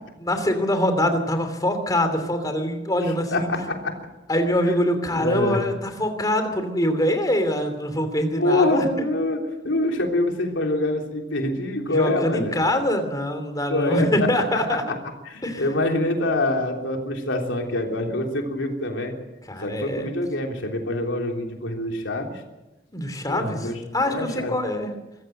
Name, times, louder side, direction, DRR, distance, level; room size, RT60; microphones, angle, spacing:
voice 1, 0.2-3.5 4.3-9.1 11.9-15.0 15.4-15.7 19.5-20.1 22.9-24.9, left 1 dB, 20° left, 7 dB, 2.9 m, -24 dB
voice 2, 3.3-4.0 5.1-5.6 8.4-12.6 13.7-14.1 15.2-19.1 19.6-22.4 23.3-23.8 24.0-24.5, left 1 dB, 85° left, 2 dB, 3.4 m, -25 dB
24.5 x 14.5 x 7.8 m, 1.0 s
head